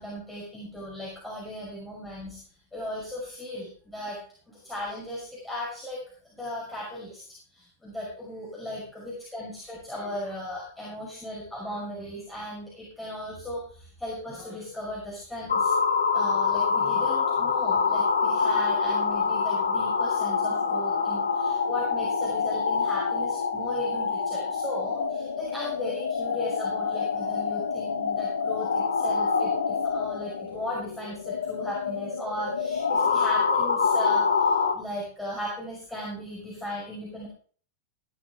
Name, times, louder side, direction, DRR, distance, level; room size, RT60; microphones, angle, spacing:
voice 1, 0.0-2.4 2.7-4.2 4.5-6.0 6.3-7.2 7.5-15.7 16.1-37.3, left 1 dB, 5° left, -6 dB, 5.6 m, -36 dB
sound 1, 15.5-34.8, left 5 dB, 70° left, 1.0 m, -26 dB
15.5 x 11.0 x 3.6 m, 0.43 s
figure-of-eight pair, 90°, 0 cm